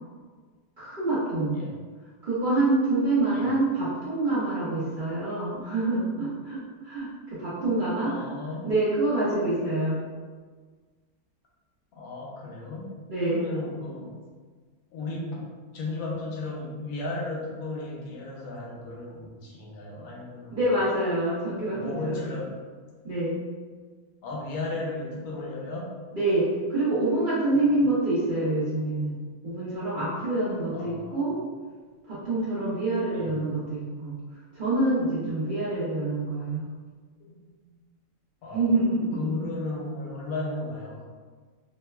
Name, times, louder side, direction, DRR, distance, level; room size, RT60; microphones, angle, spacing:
voice 1, 0.8-1.6 2.2-8.2 8.6-10.0 13.1-13.4 20.5-22.2 23.0-23.4 26.1-29.1 29.4-31.4 32.1-34.1 34.5-36.7 38.5-39.4, right 2 dB, 55° right, -10 dB, 0.6 m, -26 dB
voice 2, 8.0-8.7 11.9-12.9 13.2-14.2 14.9-15.5 15.7-20.6 21.6-22.5 24.2-25.9 27.5-27.8 30.7-31.3 33.1-33.3 37.2-37.7 38.4-38.7 39.1-41.0, left 2 dB, 85° left, -3 dB, 1.1 m, -35 dB
2.8 x 2.1 x 2.2 m, 1.5 s
omnidirectional pair, 1.5 m